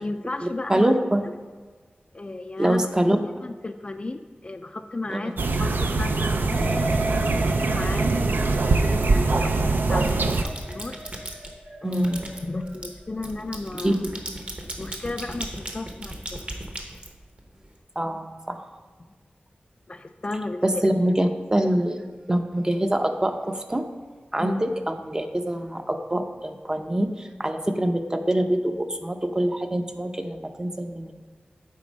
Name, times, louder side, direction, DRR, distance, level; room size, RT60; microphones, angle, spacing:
voice 1, 0.0-0.9 1.2-1.3 2.1-2.9 3.2-11.0 11.8-12.1 12.4-14.0 14.8-16.4 19.9-20.9 24.4-24.6, left 2 dB, 35° left, 7 dB, 0.3 m, -35 dB
voice 2, 0.7-1.2 2.6-3.2 5.1-5.3 11.8-12.3 13.8-14.1 18.0-18.7 20.6-22.0 22.3-23.8 24.3-31.1, right 1 dB, 20° right, 6 dB, 0.6 m, -24 dB
sound 1, 5.4-10.4, right 3 dB, 70° right, 0.5 m, -23 dB
sound 2, 6.5-13.5 13.9-14.3, right 1 dB, 55° right, 1.5 m, -35 dB
sound 3, 9.0-9.6 10.0-11.5 11.9-17.7, right 1 dB, 35° right, 1.0 m, -37 dB
8.4 x 4.4 x 5.1 m, 1.4 s
wide cardioid pair, 85°, 3 cm